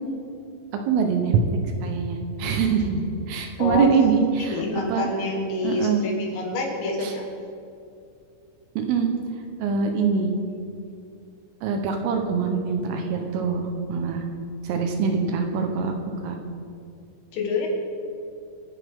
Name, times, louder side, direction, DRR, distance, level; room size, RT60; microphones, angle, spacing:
voice 1, 0.9-5.1 5.6-6.1 7.0-7.1 8.9-9.1 9.6-10.3 11.6-14.2 14.6-16.0 16.2-16.4, right 5 dB, 80° right, 4 dB, 3.7 m, -24 dB
voice 2, 4.4-7.5 17.3-17.7, left 3 dB, 65° left, 0 dB, 3.5 m, -27 dB
27.0 x 9.9 x 3.7 m, 2.5 s
omnidirectional pair, 6.0 m